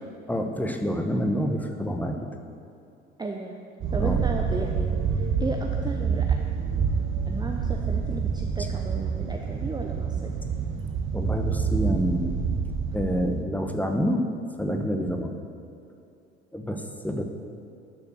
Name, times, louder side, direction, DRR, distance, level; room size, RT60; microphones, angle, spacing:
voice 1, 0.3-2.2 4.0-4.2 8.6-8.7 11.1-12.3 12.9-14.2 14.6-15.3 16.5-17.2, equal, 5° left, 4 dB, 1.2 m, -27 dB
voice 2, 3.2-3.5 3.9-6.3 7.3-10.3, right 3 dB, 15° right, 1 dB, 0.8 m, -34 dB
sound 1, 3.8-13.4, right 6 dB, 40° right, 1.2 m, -27 dB
12.0 x 7.1 x 6.4 m, 2.5 s
figure-of-eight pair, 60°, 32 cm